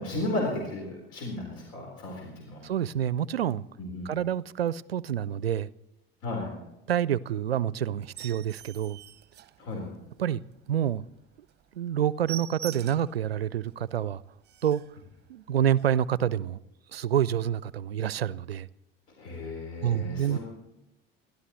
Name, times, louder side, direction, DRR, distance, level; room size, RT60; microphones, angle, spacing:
voice 1, 0.0-2.6 3.8-4.1 6.2-6.5 9.6-9.9 19.2-20.4, left 2 dB, 55° left, -1 dB, 4.3 m, -34 dB
voice 2, 2.6-3.7 4.0-5.7 6.9-9.0 10.2-10.4 10.7-11.1 11.7-14.2 14.6-14.8 15.3-16.6 16.9-18.7 19.8-20.4, right 10 dB, 85° right, 21 dB, 0.5 m, -27 dB
sound 1, 8.0-10.2 10.6-10.7 11.1-11.2 11.5-11.6 11.9-13.2 13.7-13.8 14.1-14.2 14.4-15.0 15.7-15.9, right 11 dB, 35° right, 0.8 m, -43 dB
28.5 x 12.5 x 3.1 m, 0.94 s
figure-of-eight pair, 65°, 29 cm